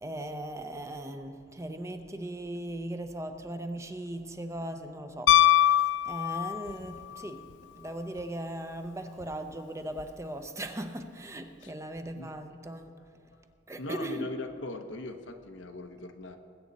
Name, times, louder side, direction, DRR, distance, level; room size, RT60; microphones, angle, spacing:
voice 1, 0.0-5.3 6.1-7.4 7.7-12.9 13.7-14.3, right 1 dB, 15° right, 7 dB, 0.7 m, -38 dB
Piano, 5.3-6.8 9.2-9.3, left 11 dB, 70° left, 0.3 m, -22 dB
voice 2, 12.1-13.5 13.8-16.4, left 2 dB, 90° left, 6 dB, 1.0 m, -41 dB
20.5 x 8.6 x 4.1 m, 2.3 s
head